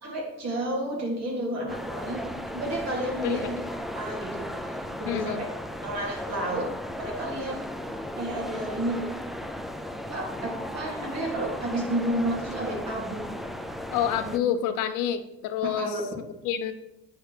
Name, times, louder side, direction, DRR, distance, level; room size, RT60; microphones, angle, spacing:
voice 1, 0.0-3.6 3.9-4.5 5.0-5.5 5.8-6.7 7.0-7.6 8.1-9.1 10.1-13.3 14.2-14.3 15.6-16.0, right 1 dB, 50° right, -2 dB, 2.6 m, -31 dB
sound 1, 1.7-14.4, equal, ahead, 0.3 m, -36 dB
voice 2, 5.0-5.4 13.9-16.0 16.4-16.7, left 9 dB, 70° left, 9 dB, 0.6 m, -28 dB
9.1 x 4.4 x 3.3 m, 0.93 s
supercardioid pair, 90°, 34 cm